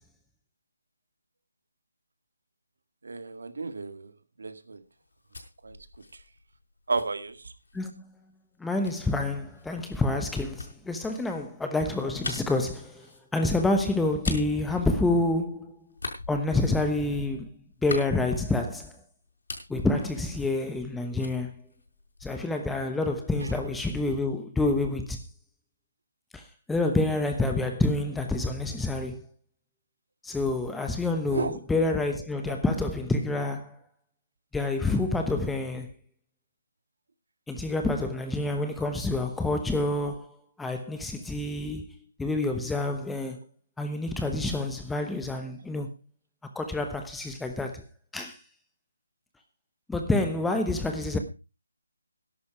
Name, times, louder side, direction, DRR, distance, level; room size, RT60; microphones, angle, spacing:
voice 1, 3.0-4.1 4.4-4.8 5.6-5.8 6.9-7.5 23.4-23.5 31.3-31.5, right 3 dB, 65° right, 2.0 m, -32 dB
sound 1, 4.9-7.9 8.8-15.5 15.9-18.9 19.2-20.9 21.2-22.5, left 3 dB, 70° left, 5.4 m, -42 dB
voice 2, 8.6-13.1 13.3-15.8 16.3-17.5 17.8-18.9 19.7-21.5 22.2-25.2 26.3-26.4 26.7-29.2 30.2-33.8 34.5-35.9 37.5-40.3 40.6-41.9 42.2-43.4 43.8-45.9 46.5-47.8 48.1-48.4 49.9-51.2, left 2 dB, 5° left, 1.1 m, -28 dB
13.5 x 11.0 x 4.7 m
figure-of-eight pair, 160°, 0 cm